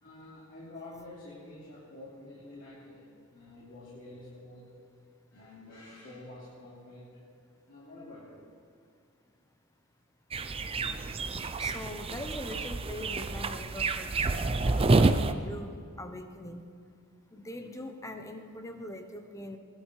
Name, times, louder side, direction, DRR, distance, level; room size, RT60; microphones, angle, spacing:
voice 1, 0.0-4.7 5.3-7.2 7.7-8.4, left 2 dB, 65° left, -10 dB, 3.4 m, -48 dB
sound 1, 10.3-15.3, right 3 dB, 25° right, 0.5 m, -28 dB
voice 2, 11.6-16.6 17.3-19.6, left 1 dB, 15° left, 6 dB, 0.9 m, -42 dB
21.5 x 12.0 x 3.3 m, 2.3 s
head